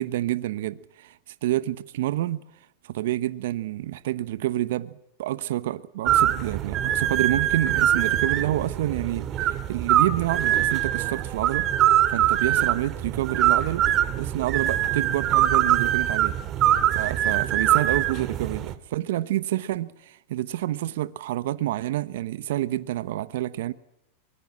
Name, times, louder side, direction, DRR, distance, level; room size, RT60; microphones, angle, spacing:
voice 1, 0.0-2.4 2.8-11.7 12.1-13.9 14.2-16.4 16.9-23.7, right 14 dB, 70° right, 1.0 m, -28 dB
sound 1, 6.1-18.7, right 11 dB, 40° right, 2.1 m, -23 dB
24.0 x 21.5 x 7.5 m
hypercardioid pair, 105°, 0 cm